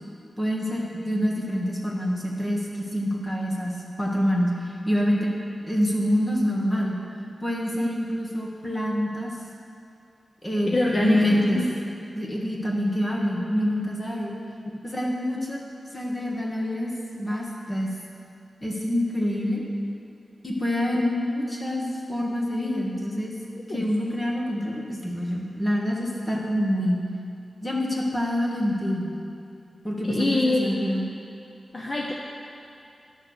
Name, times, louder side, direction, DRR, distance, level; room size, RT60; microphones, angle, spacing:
voice 1, 0.4-5.3 5.6-7.0 7.4-9.3 10.4-11.6 12.1-14.3 14.8-15.6 15.9-16.9 17.2-17.9 18.6-19.6 20.4-23.3 23.7-27.0 27.6-29.1 29.8-31.0, equal, 15° left, -2 dB, 1.4 m, -26 dB
voice 2, 10.7-11.6 23.7-23.8 30.1-30.7 31.7-32.1, left 2 dB, 35° left, -1 dB, 0.7 m, -24 dB
11.0 x 6.7 x 6.6 m, 2.6 s
wide cardioid pair, 155°, 0 cm